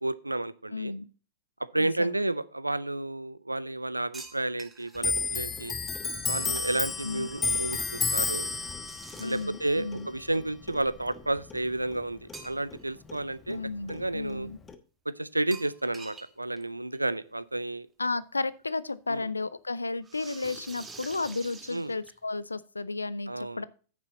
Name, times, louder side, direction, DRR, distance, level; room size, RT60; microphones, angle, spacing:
voice 1, 0.0-0.9 1.7-5.7 6.3-8.5 9.2-13.6 13.9-14.5 15.1-17.9 19.1-19.3 21.7-21.9 23.3-23.6, right 2 dB, 90° right, 17 dB, 0.5 m, -31 dB
voice 2, 0.7-1.1 1.8-2.1 7.0-7.3 9.2-10.1 13.5-14.6 18.0-23.6, left 3 dB, 85° left, 18 dB, 0.4 m, -33 dB
sound 1, 4.1-5.1 8.8-9.6 12.3-12.9 13.3-13.4 15.5-16.3 16.6-16.7 16.9-17.0 18.2-18.3 20.0-22.4, right 4 dB, 15° right, 1.5 m, -46 dB
Clock, 5.0-12.0 12.3-13.6 13.9-14.7, left 5 dB, 20° left, 1.2 m, -32 dB
9.6 x 6.8 x 4.0 m, 0.38 s
figure-of-eight pair, 95°, 0 cm